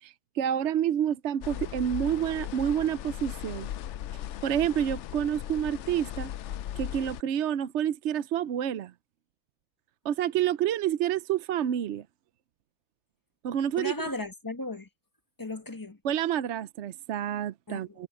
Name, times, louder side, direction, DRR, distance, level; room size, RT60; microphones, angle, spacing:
voice 1, 0.0-3.7 4.4-6.3 6.8-8.9 10.0-12.0 13.4-13.9 16.0-18.1, right 10 dB, 60° right, 0.8 m, -28 dB
sound 1, 1.4-7.2, left 11 dB, 65° left, 0.7 m, -37 dB
voice 2, 13.7-14.9 15.4-16.0 17.7-18.1, left 2 dB, 15° left, 1.4 m, -36 dB
omnidirectional pair, 1.6 m